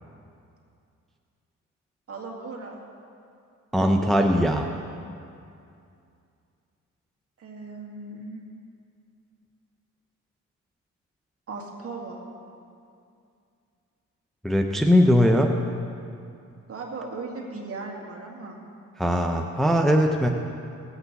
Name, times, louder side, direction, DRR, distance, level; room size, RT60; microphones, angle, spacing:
voice 1, 2.1-2.8 7.4-8.4 11.5-12.2 16.7-18.6, right 3 dB, 50° right, -1 dB, 2.3 m, -37 dB
voice 2, 3.7-4.7 14.4-15.5 19.0-20.3, equal, ahead, 2 dB, 0.7 m, -20 dB
17.5 x 8.3 x 4.1 m, 2.5 s
cardioid pair, 90°, 30 cm